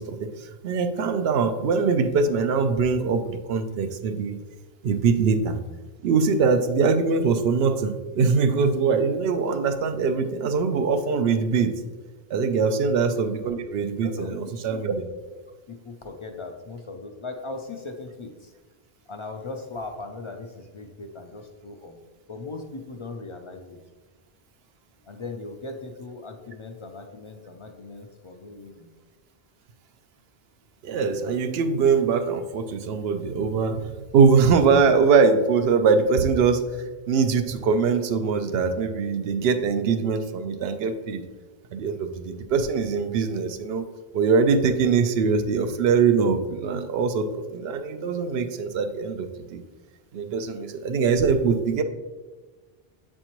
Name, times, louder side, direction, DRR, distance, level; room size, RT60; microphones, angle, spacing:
voice 1, 0.0-4.4 4.8-5.6 6.0-11.8 12.3-15.1 30.8-33.8 34.1-36.6 37.1-41.2 41.7-43.8 44.1-49.6 50.1-51.8, right 5 dB, 75° right, 8 dB, 0.8 m, -22 dB
voice 2, 12.6-12.9 14.0-14.3 14.7-14.8 15.7-18.5 19.1-22.0 22.3-23.8 25.0-28.9, left 3 dB, 50° left, 4 dB, 0.3 m, -38 dB
7.7 x 4.3 x 3.0 m, 1.3 s
omnidirectional pair, 1.0 m